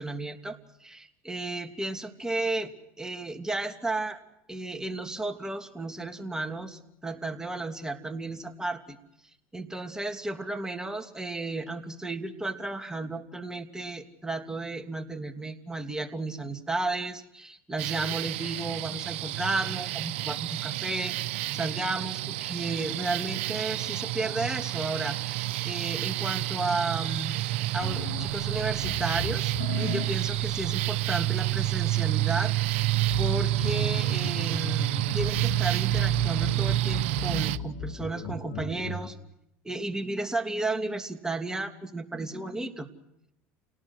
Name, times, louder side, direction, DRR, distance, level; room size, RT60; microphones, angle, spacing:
voice 1, 0.0-4.2 4.5-9.0 9.5-21.2 21.5-25.2 25.6-27.4 27.7-32.5 33.2-39.2 39.6-42.9, right 2 dB, 10° right, 4 dB, 2.9 m, -33 dB
sound 1, 17.8-37.6, right 16 dB, 80° right, 0.9 m, -29 dB
sound 2, 27.8-39.1, left 4 dB, 85° left, 3.3 m, -38 dB
30.0 x 18.5 x 6.4 m, 0.80 s
supercardioid pair, 90°, 7 cm